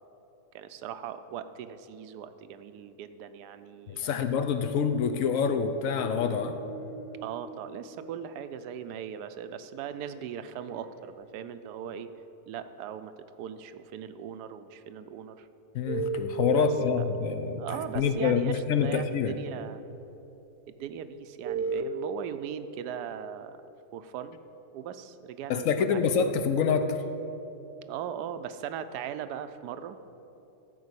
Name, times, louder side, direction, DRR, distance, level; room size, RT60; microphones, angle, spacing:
voice 1, 0.5-4.4 7.2-12.1 12.5-13.1 13.4-15.5 16.5-16.7 17.0-17.1 17.6-19.8 20.7-23.6 23.9-24.4 24.7-26.0 27.9-30.0, right 9 dB, 80° right, 11 dB, 1.2 m, -39 dB
voice 2, 3.9-6.5 15.7-19.3 25.5-27.0, left 6 dB, 65° left, 9 dB, 1.0 m, -27 dB
sound 1, 6.0-8.9 9.9-11.1, right 2 dB, 10° right, 0.6 m, -47 dB
sound 2, 15.9-16.8 18.0-18.1 21.4-21.8, right 5 dB, 65° right, 0.6 m, -29 dB
13.5 x 4.7 x 8.1 m, 3.0 s
omnidirectional pair, 1.7 m